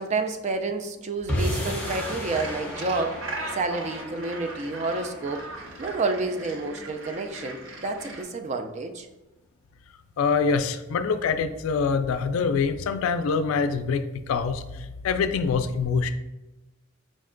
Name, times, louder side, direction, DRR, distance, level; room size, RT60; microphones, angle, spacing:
voice 1, 0.0-9.1, right 3 dB, 35° right, 6 dB, 0.3 m, -30 dB
sound 1, 1.3-7.7, equal, 10° left, 0.8 m, -35 dB
Gull seagull, 1.5-8.2, right 2 dB, 65° right, 0.7 m, -39 dB
voice 2, 10.2-14.0 14.3-14.6 15.0-16.1, left 5 dB, 85° left, 10 dB, 0.3 m, -24 dB
5.1 x 2.2 x 3.7 m, 1.0 s
head